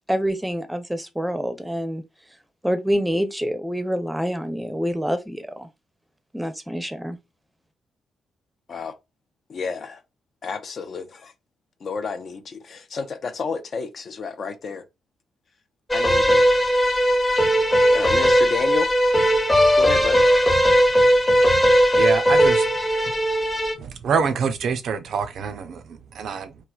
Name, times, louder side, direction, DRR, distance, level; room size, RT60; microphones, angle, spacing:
voice 1, 0.1-2.0 2.6-5.7 6.3-7.2, equal, 5° right, 0.6 m, -26 dB
voice 2, 9.5-10.0 10.4-11.3 11.8-14.8 15.9-16.4 17.9-18.9 19.8-20.2, left 5 dB, 50° left, 0.4 m, -30 dB
sound 1, 15.9-23.7, equal, 25° left, 0.8 m, -18 dB
voice 3, 22.0-22.6 23.7-26.6, right 6 dB, 60° right, 0.4 m, -26 dB
3.1 x 2.1 x 2.3 m
hypercardioid pair, 40°, 0 cm